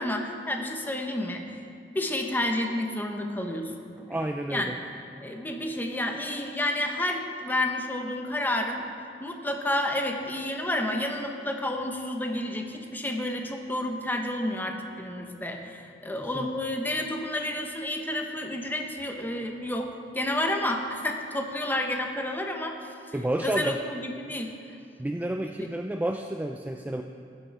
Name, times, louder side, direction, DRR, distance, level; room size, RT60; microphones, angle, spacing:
voice 1, 0.0-1.5 1.9-3.8 4.5-4.8 5.2-8.8 9.2-23.1 23.4-24.5 25.6-25.7, left 1 dB, 10° left, 3 dB, 0.9 m, -30 dB
voice 2, 4.1-4.8 16.3-16.5 23.1-23.8 25.0-27.0, right 1 dB, 10° right, 4 dB, 0.3 m, -30 dB
16.0 x 7.3 x 4.7 m, 2.5 s
head